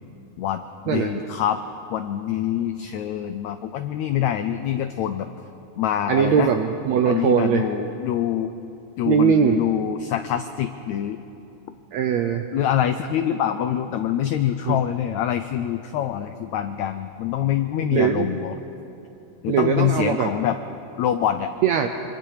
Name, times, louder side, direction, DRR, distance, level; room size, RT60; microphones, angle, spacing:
voice 1, 0.4-1.6 1.9-5.3 5.8-6.5 7.0-8.5 9.0-11.2 12.5-18.6 19.4-20.6 21.0-21.5, left 10 dB, 90° left, 9 dB, 1.6 m, -25 dB
voice 2, 6.1-7.7 9.1-9.6 11.9-12.4 14.7-14.8 17.8-18.3 19.5-20.3 21.6-21.9, right 7 dB, 75° right, 5 dB, 1.6 m, -20 dB
26.5 x 24.5 x 4.9 m, 2.8 s
omnidirectional pair, 4.0 m